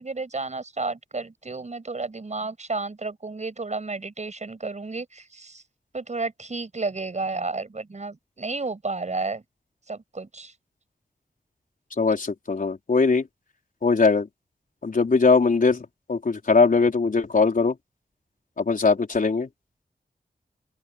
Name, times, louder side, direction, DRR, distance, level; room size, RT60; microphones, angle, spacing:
voice 1, 0.0-5.6 5.9-9.4 9.9-10.5, right 3 dB, 45° right, 6.7 m, -32 dB
voice 2, 12.0-13.3 13.8-14.3 14.8-17.8 18.6-19.5, left 4 dB, 60° left, 4.4 m, -21 dB
open air
cardioid pair, 60°, 16 cm